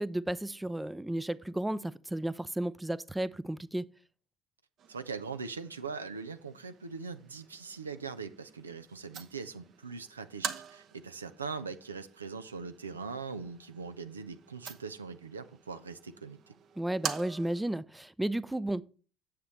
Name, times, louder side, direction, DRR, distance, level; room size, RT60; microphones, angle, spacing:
voice 1, 0.0-3.9 16.8-18.8, right 1 dB, 10° right, 0.5 m, -33 dB
sound 1, 4.8-17.8, right 8 dB, 50° right, 0.9 m, -46 dB
voice 2, 4.9-16.5, right 5 dB, 85° right, 0.5 m, -41 dB
9.5 x 7.5 x 3.2 m
figure-of-eight pair, 60°, 0 cm